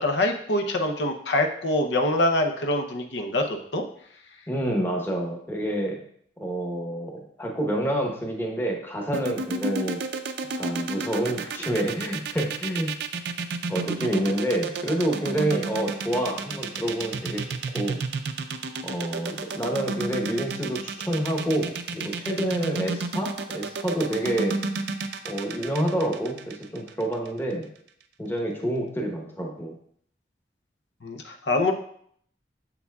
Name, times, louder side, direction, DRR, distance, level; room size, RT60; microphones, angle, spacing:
voice 1, 0.0-3.8 31.0-31.7, left 1 dB, 80° left, 4 dB, 0.7 m, -25 dB
voice 2, 4.5-6.0 6.4-10.0 10.6-12.9 13.7-17.5 17.7-18.0 18.8-24.6 25.2-27.7 28.2-29.7, right 1 dB, 15° left, 0 dB, 0.9 m, -28 dB
sound 1, 9.1-27.3, right 4 dB, 70° right, 0.5 m, -31 dB
7.1 x 6.9 x 2.3 m, 0.65 s
head